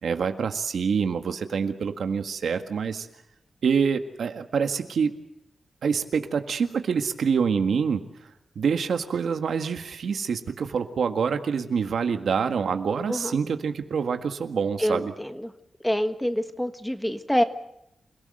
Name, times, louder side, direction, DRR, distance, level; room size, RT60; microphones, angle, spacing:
voice 1, 0.0-3.1 3.6-5.1 5.8-8.0 8.5-15.1, right 6 dB, 80° right, 7 dB, 1.7 m, -26 dB
voice 2, 14.8-15.5 15.8-17.4, equal, 5° left, 9 dB, 1.3 m, -26 dB
28.5 x 17.5 x 7.8 m, 0.82 s
wide cardioid pair, 115°, 0 cm